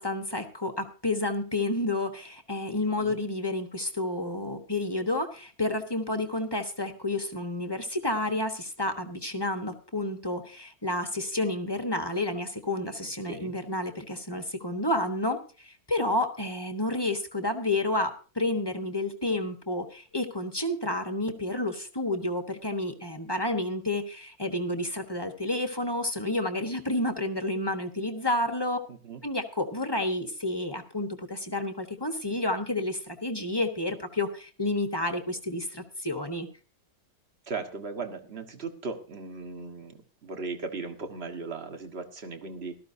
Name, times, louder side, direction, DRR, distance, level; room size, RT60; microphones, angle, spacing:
voice 1, 0.0-28.8 29.2-36.5, left 1 dB, 15° left, 5 dB, 1.0 m, -30 dB
voice 2, 2.9-3.2 13.3-13.5 28.9-29.2 37.5-42.8, right 4 dB, 40° right, 6 dB, 1.6 m, -37 dB
17.5 x 13.0 x 2.7 m, 0.36 s
omnidirectional pair, 1.9 m